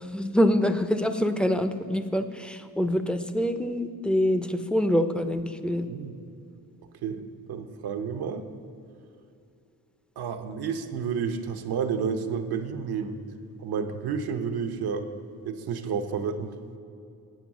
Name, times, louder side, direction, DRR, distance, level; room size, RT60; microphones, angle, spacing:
voice 1, 0.1-5.9, equal, 5° left, 9 dB, 0.4 m, -25 dB
voice 2, 7.5-8.5 10.2-13.2 13.6-15.1 15.4-16.5, right 6 dB, 85° right, 6 dB, 0.8 m, -30 dB
9.2 x 5.4 x 7.1 m, 2.6 s
cardioid pair, 115°, 37 cm